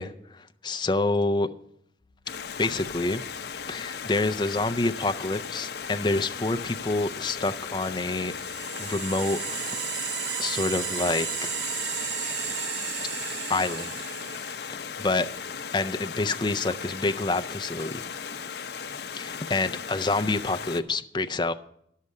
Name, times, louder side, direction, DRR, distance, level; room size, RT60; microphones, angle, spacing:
voice 1, 0.0-1.5 2.6-3.2 3.6-8.3 8.8-9.8 10.4-11.3 13.5-13.9 15.0-15.3 15.7-18.1 19.1-21.5, left 2 dB, 25° left, 0.4 m, -27 dB
sound 1, 2.0-8.7, left 2 dB, 25° right, 6.5 m, -62 dB
Stream, 2.3-20.8, left 6 dB, 70° left, 0.6 m, -37 dB
sound 2, 7.9-14.7, right 8 dB, 80° right, 0.6 m, -34 dB
11.0 x 6.6 x 8.3 m
head